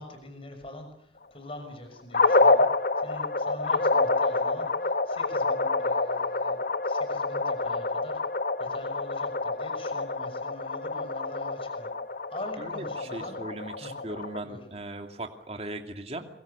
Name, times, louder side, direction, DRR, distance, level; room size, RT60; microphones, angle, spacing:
voice 1, 0.0-2.7 3.0-8.1 8.6-11.9 12.3-13.4 13.8-13.9 14.4-14.7, left 1 dB, 30° left, 6 dB, 6.2 m, -43 dB
sound 1, 2.1-14.4, left 3 dB, 55° left, 1.0 m, -27 dB
voice 2, 12.6-16.2, right 1 dB, 35° right, 5 dB, 2.5 m, -38 dB
26.5 x 24.0 x 6.9 m, 0.69 s
head